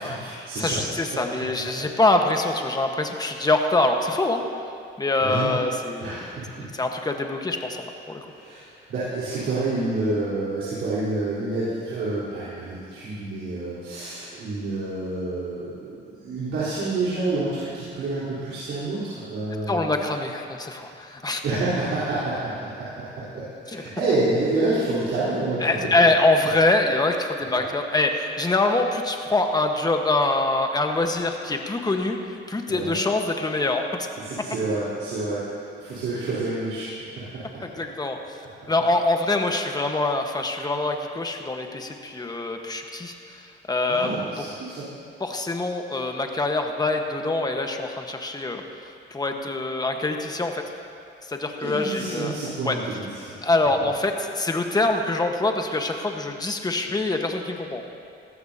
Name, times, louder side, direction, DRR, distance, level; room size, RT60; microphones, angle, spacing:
voice 1, 0.0-0.8 1.1-1.2 5.2-5.6 6.0-6.7 8.3-20.0 21.4-25.9 27.5-27.6 32.7-33.0 34.2-35.5 35.8-36.9 37.2-37.6 43.9-44.9 51.6-53.3, right 2 dB, 75° right, -12 dB, 3.9 m, -28 dB
voice 2, 0.6-4.4 5.0-6.2 6.6-8.2 19.7-21.4 23.7-23.8 25.6-33.8 37.6-38.4 38.7-44.1 45.2-48.6 49.1-50.6 51.3-52.3 52.6-52.8 53.4-57.9, left 2 dB, 20° left, 3 dB, 1.3 m, -24 dB
18.5 x 14.0 x 2.9 m, 2.4 s
cardioid pair, 90°, 20 cm